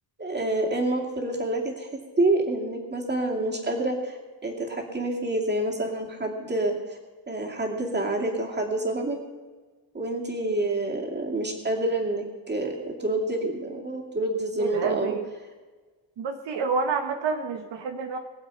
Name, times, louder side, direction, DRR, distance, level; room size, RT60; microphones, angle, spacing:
voice 1, 0.2-4.2 4.4-7.0 7.3-9.2 9.9-15.1, right 2 dB, 25° right, 1 dB, 2.6 m, -28 dB
voice 2, 14.6-15.3 16.2-18.2, right 5 dB, 75° right, 5 dB, 1.4 m, -28 dB
22.0 x 7.5 x 5.7 m, 1.3 s
cardioid pair, 140°, 44 cm